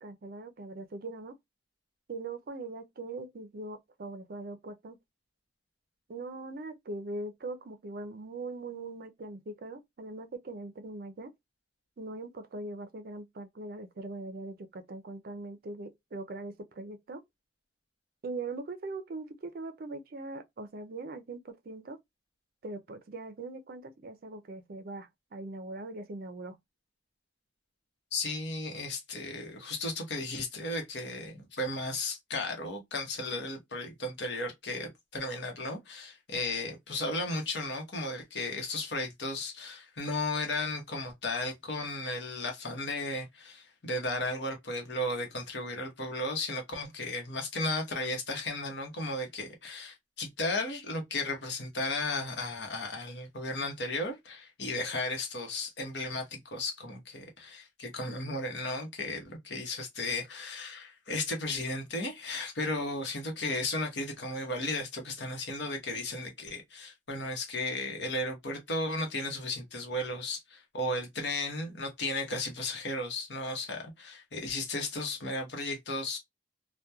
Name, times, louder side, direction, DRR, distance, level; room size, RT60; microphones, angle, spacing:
voice 1, 0.0-1.3 2.1-5.0 6.1-11.3 12.0-17.2 18.2-22.0 22.6-26.6, right 2 dB, 55° right, 0.4 m, -41 dB
voice 2, 28.1-76.2, left 2 dB, 70° left, 0.9 m, -35 dB
2.9 x 2.1 x 2.2 m
head